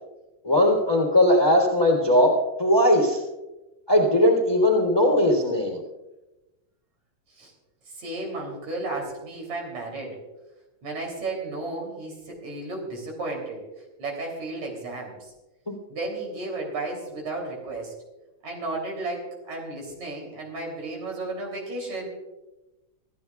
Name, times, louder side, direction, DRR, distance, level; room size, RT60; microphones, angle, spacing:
voice 1, 0.4-2.3 2.6-3.2 3.9-5.8 15.7-15.8, left 1 dB, 10° left, -2 dB, 2.9 m, -19 dB
voice 2, 7.9-10.2 10.8-13.6 14.0-15.3 15.9-17.9 18.4-22.1, right 2 dB, 65° right, 0 dB, 4.5 m, -33 dB
26.5 x 15.0 x 2.4 m, 1.0 s
omnidirectional pair, 3.4 m